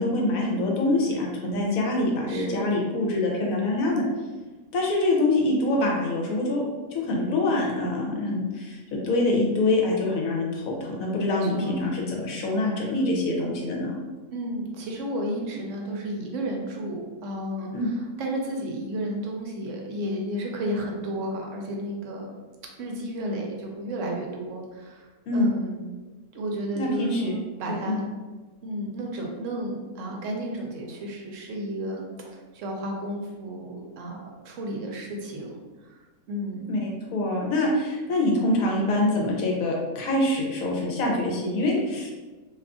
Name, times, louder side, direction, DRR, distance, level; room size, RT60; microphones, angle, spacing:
voice 1, 0.0-4.0 4.7-6.6 6.9-14.0 17.7-17.9 25.3-25.5 26.8-27.3 27.7-28.0 36.7-42.1, left 2 dB, 75° left, -1 dB, 1.1 m, -25 dB
voice 2, 2.3-2.6 11.3-11.9 14.3-22.3 22.8-25.1 25.3-25.8 26.3-28.1 28.6-36.0 36.3-36.6, right 1 dB, 65° right, 0 dB, 0.9 m, -32 dB
2.7 x 2.4 x 3.6 m, 1.3 s
omnidirectional pair, 1.5 m